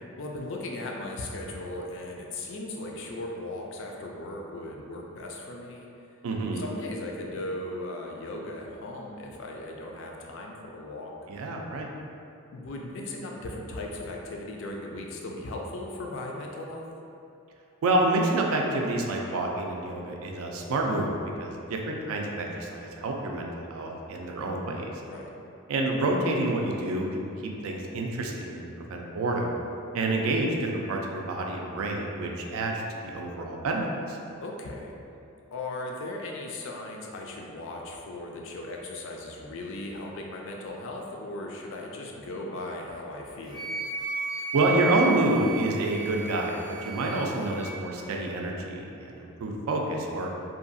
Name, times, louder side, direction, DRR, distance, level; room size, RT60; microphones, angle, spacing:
voice 1, 0.2-5.9 6.6-11.1 12.5-16.9 25.1-25.3 34.4-35.0 35.5-43.7, left 2 dB, 60° left, 0 dB, 0.3 m, -37 dB
voice 2, 6.2-6.6 11.3-11.9 17.8-21.1 21.4-24.9 25.7-27.3 27.6-29.5 29.9-32.7 33.0-34.2 44.5-50.3, right 2 dB, 70° right, 0 dB, 0.3 m, -28 dB
Wind instrument woodwind instrument, 43.5-47.7, right 5 dB, 20° right, 0.6 m, -34 dB
2.7 x 2.3 x 2.5 m, 2.7 s
head